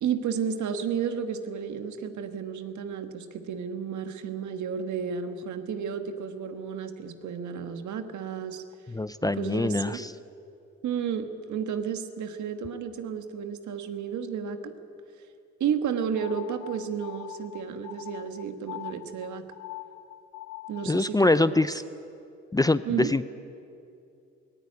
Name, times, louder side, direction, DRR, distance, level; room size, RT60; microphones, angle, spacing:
voice 1, 0.0-8.6 9.2-10.0 10.8-14.7 15.6-19.4 20.7-21.6 22.9-23.1, right 7 dB, 75° right, 8 dB, 1.6 m, -32 dB
voice 2, 8.9-10.1 20.8-21.8 22.5-23.2, left 2 dB, 10° left, 14 dB, 0.5 m, -24 dB
sound 1, 16.2-21.1, left 15 dB, 80° left, 0.9 m, -42 dB
18.0 x 17.0 x 9.8 m, 2.6 s
cardioid pair, 90°, 30 cm